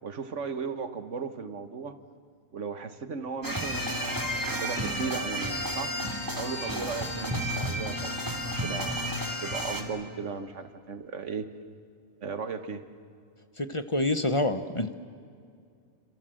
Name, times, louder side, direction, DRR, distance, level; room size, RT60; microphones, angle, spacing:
voice 1, 0.0-2.0 2.5-6.1 6.4-9.0 9.4-11.5 12.2-12.8, right 5 dB, 90° right, 9 dB, 1.8 m, -36 dB
sound 1, 3.4-9.8, equal, 15° right, 2.3 m, -32 dB
Trumpet, 3.7-9.8, equal, 10° left, 4.7 m, -43 dB
voice 2, 13.6-14.9, left 2 dB, 30° left, 10 dB, 1.0 m, -27 dB
28.5 x 26.5 x 7.8 m, 2.3 s
omnidirectional pair, 1.2 m